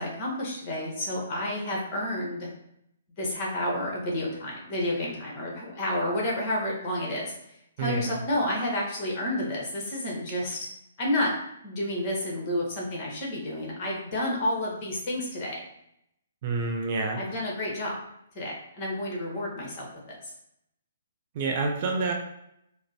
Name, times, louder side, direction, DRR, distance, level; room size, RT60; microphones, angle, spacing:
voice 1, 0.0-2.5 3.2-7.3 7.8-10.7 11.0-11.3 11.6-15.6 17.2-18.0 18.3-20.3, left 1 dB, 30° left, -2 dB, 1.2 m, -30 dB
voice 2, 7.8-8.2 16.4-17.2 21.3-22.1, right 3 dB, 40° right, 3 dB, 0.5 m, -28 dB
4.9 x 2.1 x 2.8 m, 0.78 s
figure-of-eight pair, 125°, 0 cm